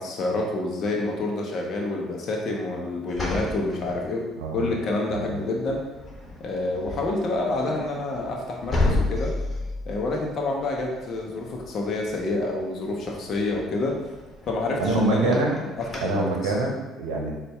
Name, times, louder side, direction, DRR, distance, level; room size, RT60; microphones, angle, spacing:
voice 1, 0.0-4.2 4.5-5.8 6.4-9.3 9.9-14.0 14.5-16.5, left 2 dB, 55° left, 0 dB, 0.6 m, -28 dB
sound 1, 3.1-4.6 5.1-5.4 5.7-16.0, left 2 dB, 35° left, 1.2 m, -33 dB
voice 2, 4.4-4.7 5.1-5.3 14.8-15.5 16.0-17.3, right 2 dB, 85° right, 0 dB, 0.7 m, -25 dB
4.0 x 2.2 x 3.4 m, 1.1 s
hypercardioid pair, 65°, 0 cm